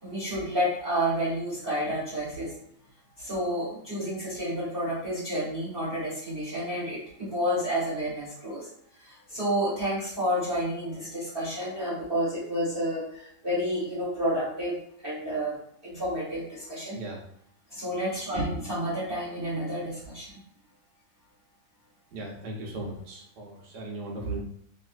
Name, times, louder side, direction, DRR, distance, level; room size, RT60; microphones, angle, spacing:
voice 1, 0.0-2.6 3.2-8.7 9.0-14.8 15.0-15.5 15.8-17.0 17.7-20.4, equal, 30° right, -11 dB, 1.3 m, -30 dB
voice 2, 22.1-24.4, right 2 dB, 65° right, -1 dB, 1.3 m, -37 dB
3.1 x 3.0 x 2.5 m, 0.71 s
omnidirectional pair, 2.1 m